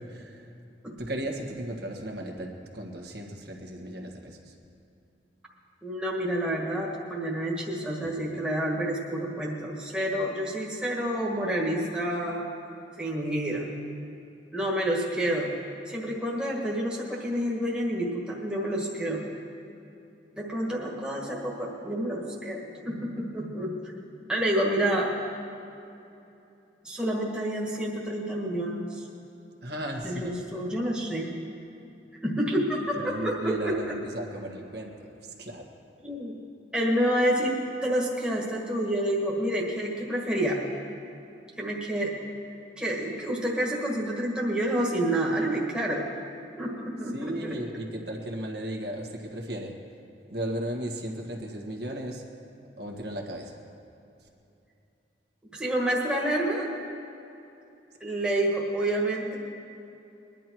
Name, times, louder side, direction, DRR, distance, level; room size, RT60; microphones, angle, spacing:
voice 1, 0.1-0.5 1.0-4.5 29.6-30.4 33.0-35.7 47.1-49.8 50.3-52.2 52.8-53.6, right 1 dB, 60° right, 1 dB, 1.7 m, -35 dB
voice 2, 5.8-12.4 13.0-13.7 14.5-15.5 15.9-19.3 20.4-22.6 22.9-23.9 24.3-25.1 26.8-29.1 30.0-31.3 32.2-34.0 36.0-36.4 36.7-37.5 37.8-40.6 41.6-42.1 42.8-46.1 46.6-47.6 55.5-56.7 58.0-59.4, right 1 dB, 5° right, -3 dB, 1.6 m, -28 dB
21.5 x 11.0 x 4.6 m, 2.8 s
head